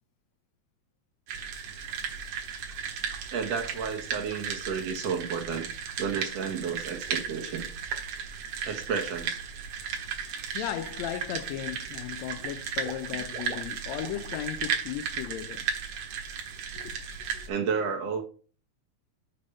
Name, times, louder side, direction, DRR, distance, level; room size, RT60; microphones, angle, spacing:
sound 1, 1.3-17.5, right 7 dB, 90° right, 2.8 m, -35 dB
voice 1, 3.3-5.7 6.0-7.7 8.6-9.4 10.5-10.7 17.5-18.2, right 6 dB, 65° right, 2.1 m, -31 dB
Water / Liquid, 10.2-10.5 10.9-11.6 11.8-14.4 14.6-14.9 15.2-15.3, right 3 dB, 40° right, 1.8 m, -47 dB
voice 2, 10.5-15.6 16.7-16.9 17.3-17.5, left 11 dB, 80° left, 1.6 m, -36 dB
6.8 x 5.4 x 5.4 m
omnidirectional pair, 3.4 m